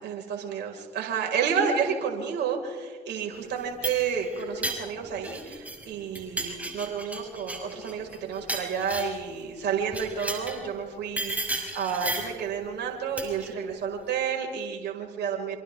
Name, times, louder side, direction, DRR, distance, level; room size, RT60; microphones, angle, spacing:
voice 1, 0.0-15.6, right 6 dB, 60° right, 1 dB, 5.7 m, -30 dB
sound 1, 3.5-5.9 6.1-9.3 9.9-10.6 11.2-12.4 13.2-13.5, right 1 dB, 5° right, 6.6 m, -34 dB
27.5 x 27.0 x 3.8 m, 1.5 s
hypercardioid pair, 55°, 20 cm